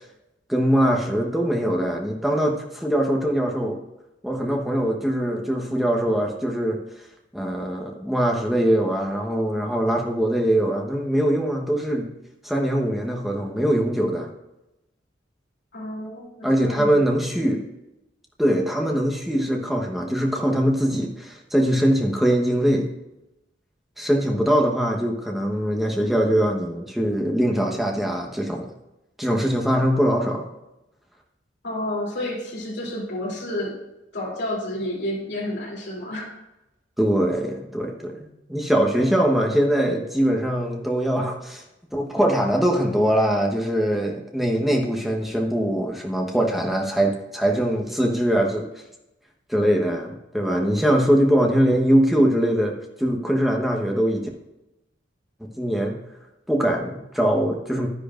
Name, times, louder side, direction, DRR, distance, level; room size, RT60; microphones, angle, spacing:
voice 1, 0.5-3.8 4.2-6.8 7.3-12.1 12.4-14.3 16.4-17.6 18.4-22.9 24.0-28.7 29.2-30.5 37.0-41.6 41.9-48.7 49.5-54.3 55.4-56.0 56.5-57.9, equal, ahead, 0 dB, 1.1 m, -22 dB
voice 2, 15.7-17.1 31.6-33.7 34.1-36.3 38.7-39.1, left 1 dB, 60° left, -3 dB, 3.0 m, -30 dB
11.0 x 10.0 x 2.5 m, 0.94 s
head